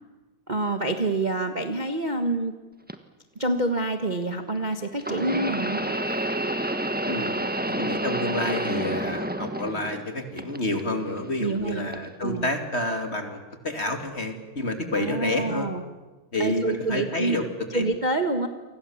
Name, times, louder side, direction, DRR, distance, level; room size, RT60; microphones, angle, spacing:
voice 1, 0.5-2.6 3.3-5.8 11.4-12.5 14.9-15.8 16.4-17.4 17.7-18.5, right 2 dB, 25° right, 6 dB, 1.3 m, -27 dB
sound 1, 2.9-3.0 5.0-10.0 10.4-11.2 11.9-12.1 13.0-13.1, right 1 dB, 5° right, 0.7 m, -29 dB
voice 2, 7.1-15.7 16.3-17.4 17.7-17.8, left 2 dB, 30° left, 5 dB, 2.8 m, -29 dB
29.0 x 25.0 x 7.3 m, 1.2 s
omnidirectional pair, 2.3 m